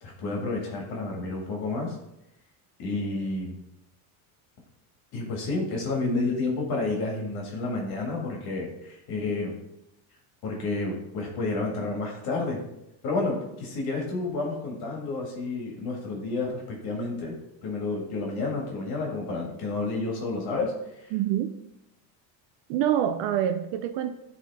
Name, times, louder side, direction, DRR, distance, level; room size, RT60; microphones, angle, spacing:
voice 1, 0.0-2.0 2.8-3.6 5.1-9.5 10.4-12.6 13.0-17.4 17.6-21.1, left 3 dB, 55° left, 0 dB, 1.8 m, -30 dB
voice 2, 21.1-21.5 22.7-24.2, right 10 dB, 65° right, 8 dB, 0.6 m, -26 dB
10.0 x 3.6 x 3.5 m, 0.87 s
cardioid pair, 130°, 44 cm